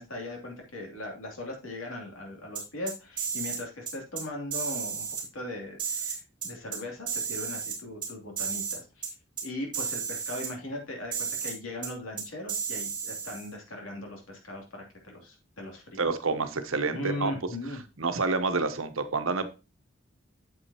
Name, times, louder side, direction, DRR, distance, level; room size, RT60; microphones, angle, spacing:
voice 1, 0.0-5.1 5.3-9.1 9.4-16.0 16.9-17.8, left 1 dB, 85° left, 1 dB, 2.9 m, -39 dB
sound 1, 2.5-3.6 3.9-4.2 4.5-5.2 5.8-6.8 7.1-8.1 8.4-8.8 9.0-9.1 9.4-9.5 9.7-10.5 11.1-11.5 11.8-11.9 12.2-13.5, right 7 dB, 20° right, 3.0 m, -33 dB
voice 2, 16.0-17.3 18.0-19.5, right 4 dB, 75° right, 9 dB, 1.0 m, -28 dB
8.7 x 7.6 x 2.8 m, 0.29 s
head